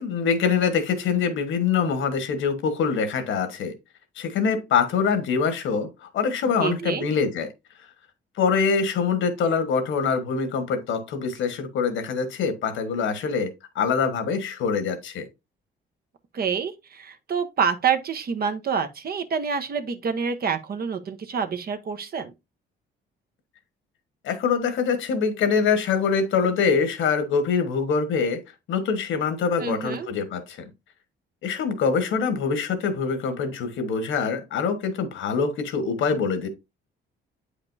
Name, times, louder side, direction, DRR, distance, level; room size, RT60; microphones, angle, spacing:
voice 1, 0.0-3.7 4.2-7.5 8.4-15.3 24.2-28.4 28.7-30.6 31.4-36.5, left 5 dB, 80° left, 1.4 m, -24 dB
voice 2, 6.6-7.0 16.3-22.3 29.6-30.1, right 6 dB, 50° right, 0.9 m, -27 dB
8.4 x 5.1 x 2.6 m
cardioid pair, 90°, 20 cm